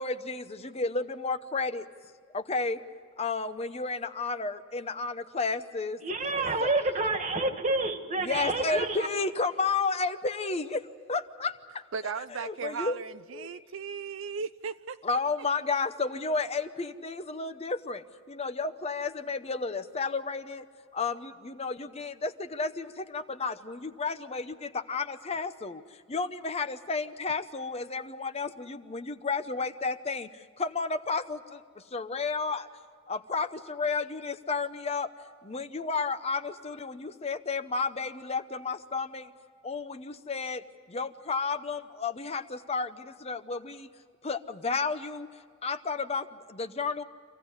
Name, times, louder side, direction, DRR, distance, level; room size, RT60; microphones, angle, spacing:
voice 1, 0.0-1.9 2.3-2.8 3.2-6.0 6.6-6.7 8.2-11.8 12.3-13.0 13.3-13.5 15.0-20.6 20.9-25.8 26.1-31.6 31.9-32.7 33.1-35.1 35.4-39.3 39.6-43.9 44.2-45.3 45.6-47.0, left 4 dB, 30° left, 10 dB, 0.8 m, -32 dB
voice 2, 6.0-9.1, right 2 dB, 35° right, 7 dB, 1.7 m, -28 dB
voice 3, 11.9-15.0, right 5 dB, 70° right, 13 dB, 0.5 m, -36 dB
26.0 x 16.0 x 9.7 m, 2.1 s
head